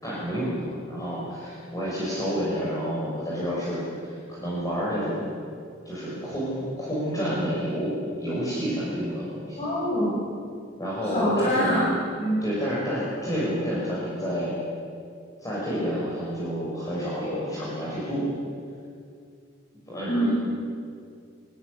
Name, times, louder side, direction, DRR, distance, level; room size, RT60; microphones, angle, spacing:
voice 1, 0.0-5.2 5.8-7.9 8.2-9.6 10.8-11.9 12.4-14.5 15.4-18.2 19.9-20.3, equal, 20° left, -7 dB, 6.2 m, -29 dB
voice 2, 9.6-10.2 11.0-11.8 12.2-12.4 20.1-20.3, equal, 35° left, -6 dB, 6.2 m, -24 dB
26.5 x 14.0 x 9.9 m, 2.3 s
head